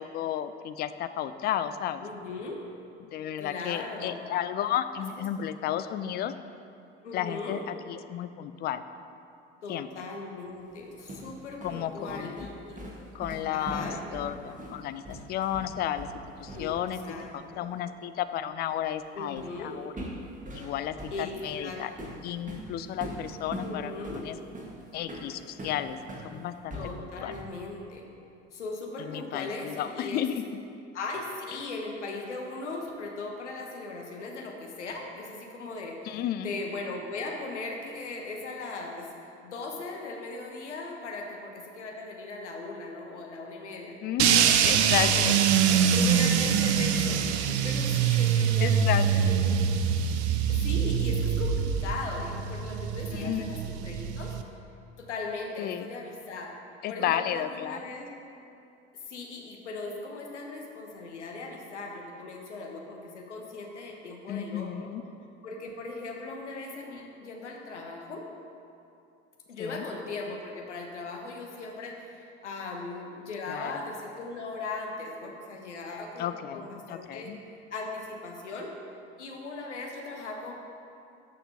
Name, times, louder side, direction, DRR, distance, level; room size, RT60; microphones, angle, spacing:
voice 1, 0.0-2.0 3.1-6.3 7.1-7.6 7.9-8.8 9.7-9.9 11.6-12.5 13.1-16.1 16.4-17.0 17.3-19.9 20.5-21.0 21.4-21.9 22.2-24.4 24.9-27.3 29.1-30.8 36.1-36.5 44.0-45.3 48.6-49.1 53.1-53.5 55.6-55.9 56.8-57.8 64.3-65.0 69.6-69.8 73.5-73.7 76.2-77.4, left 11 dB, 30° left, 11 dB, 0.4 m, -33 dB
voice 2, 2.0-2.6 3.4-4.3 7.0-7.6 9.6-12.8 13.5-14.0 16.5-16.7 17.0-17.7 19.1-19.8 21.1-22.2 23.6-24.2 26.7-28.1 28.5-30.2 30.9-39.1 39.4-44.0 44.3-45.3 45.7-49.6 50.5-54.3 55.0-56.6 56.9-58.1 59.0-64.9 65.4-68.2 69.5-77.3 77.7-78.7 79.2-80.5, left 3 dB, 80° left, 1 dB, 1.0 m, -38 dB
sound 1, 10.7-16.9 17.2-17.4 19.4-19.6 20.0-26.3 26.7-27.6, right 1 dB, 20° right, 1.6 m, -41 dB
sound 2, 44.2-54.4, right 7 dB, 65° right, 0.6 m, -24 dB
12.0 x 6.7 x 2.8 m, 2.6 s
figure-of-eight pair, 60°, 35 cm